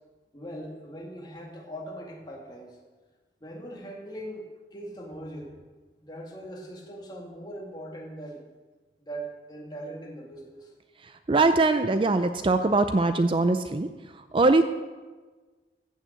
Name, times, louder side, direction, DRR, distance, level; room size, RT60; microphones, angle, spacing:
voice 1, 0.3-2.8 3.4-5.6 6.0-8.4 9.0-10.7, right 1 dB, 25° left, 0 dB, 2.1 m, -40 dB
voice 2, 11.3-13.9 14.3-14.6, right 3 dB, 30° right, 9 dB, 0.4 m, -22 dB
14.5 x 6.5 x 7.9 m, 1.3 s
head